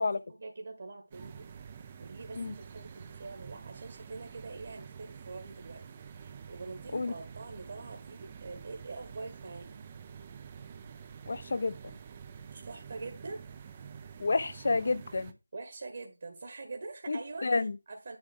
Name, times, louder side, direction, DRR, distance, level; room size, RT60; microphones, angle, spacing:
voice 1, 0.0-1.5 2.0-5.8 6.1-9.8 12.5-13.4 15.5-17.6 17.9-18.2, right 3 dB, 40° right, 1.7 m, -44 dB
sound 1, 1.1-15.3, right 7 dB, 20° right, 0.6 m, -48 dB
voice 2, 11.3-11.8 14.2-15.3 17.1-17.7, left 3 dB, 40° left, 0.8 m, -30 dB
10.5 x 3.6 x 6.7 m
figure-of-eight pair, 170°, 0 cm